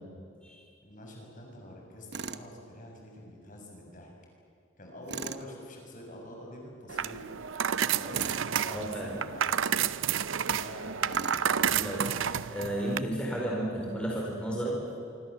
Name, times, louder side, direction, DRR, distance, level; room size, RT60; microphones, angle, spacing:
voice 1, 0.8-4.1 4.8-7.3 8.0-8.2 8.6-9.8 10.5-12.1, left 1 dB, 40° left, 0 dB, 6.9 m, -46 dB
Tools, 2.1-2.5 5.1-5.5 8.1-8.5 11.1-11.5, right 5 dB, 60° right, 1.0 m, -38 dB
sound 1, 6.9-13.0, right 8 dB, 80° right, 0.6 m, -30 dB
voice 2, 8.7-9.1 11.8-12.0 12.5-14.8, right 1 dB, 5° left, -3 dB, 4.8 m, -32 dB
26.0 x 25.5 x 7.5 m, 2.5 s
head